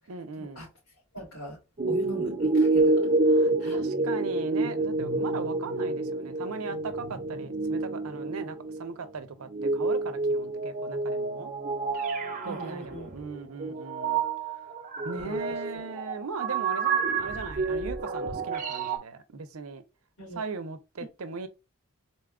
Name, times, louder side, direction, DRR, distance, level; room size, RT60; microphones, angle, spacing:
voice 1, 0.1-0.7 3.3-11.5 12.4-14.2 15.0-19.8 20.3-21.5, right 4 dB, 85° right, 0.6 m, -39 dB
voice 2, 1.1-1.6 1.9-3.1 3.6-4.0 12.4-13.1 15.1-15.5 20.2-20.4, right 1 dB, 90° left, 2.5 m, -40 dB
sound 1, 1.8-8.9 9.4-19.0, right 3 dB, 35° right, 0.6 m, -28 dB
4.1 x 2.3 x 3.5 m
head